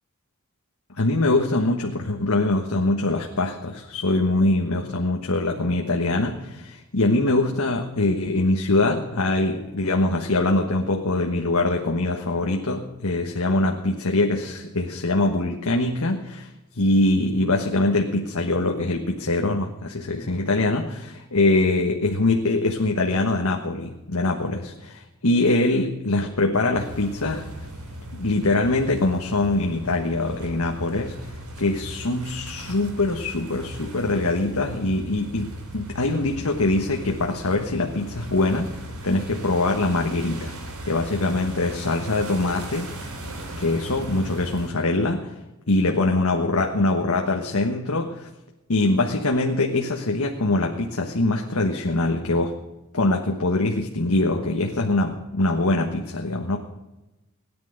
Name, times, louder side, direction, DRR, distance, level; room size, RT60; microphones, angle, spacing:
voice 1, 1.0-16.5 16.8-27.5 28.1-31.2 31.6-38.7 39.0-40.5 40.9-43.1 43.6-45.3 45.7-48.3 48.7-52.5 52.9-56.6, left 2 dB, 85° left, 2 dB, 1.4 m, -23 dB
sound 1, 26.7-44.7, right 1 dB, 80° right, 3.3 m, -37 dB
17.5 x 10.5 x 6.5 m, 1.0 s
head